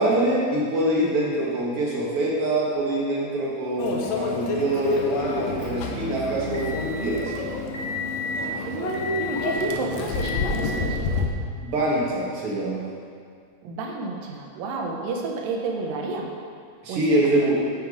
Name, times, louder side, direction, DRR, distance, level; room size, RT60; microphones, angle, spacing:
voice 1, 0.0-7.3 11.6-12.9 16.8-17.6, right 1 dB, 50° right, -4 dB, 1.9 m, -24 dB
Microwave oven, 3.8-11.3, left 4 dB, 85° left, 1.5 m, -30 dB
Motor vehicle (road) / Engine, 4.8-10.9, left 2 dB, 45° left, 1.9 m, -33 dB
voice 2, 8.7-11.3 13.6-16.3 16.9-17.5, right 3 dB, 75° right, 1 dB, 2.6 m, -30 dB
9.1 x 6.7 x 5.0 m, 2.2 s
omnidirectional pair, 4.2 m